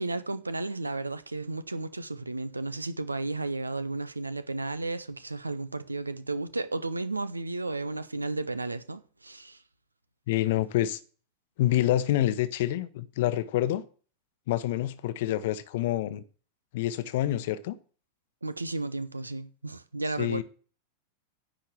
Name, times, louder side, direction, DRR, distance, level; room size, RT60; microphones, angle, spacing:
voice 1, 0.0-9.6 18.4-20.4, right 2 dB, 80° right, 0.7 m, -33 dB
voice 2, 10.3-11.0 11.6-13.8 14.5-16.2 16.7-17.8 20.2-20.4, left 13 dB, 55° left, 0.8 m, -27 dB
10.0 x 5.2 x 7.6 m
figure-of-eight pair, 90°, 0 cm